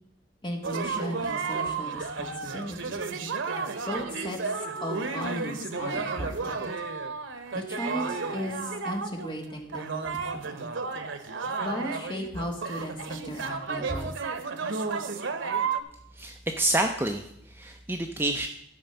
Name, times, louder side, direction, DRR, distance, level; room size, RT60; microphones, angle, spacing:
voice 1, 0.4-3.0 3.9-6.6 7.5-10.5 11.6-14.1, equal, 25° left, 1 dB, 1.7 m, -36 dB
sound 1, 0.6-15.8, right 4 dB, 85° right, 1.0 m, -32 dB
voice 2, 16.1-18.5, right 1 dB, 10° right, 4 dB, 0.5 m, -28 dB
12.5 x 5.2 x 6.8 m, 0.74 s
head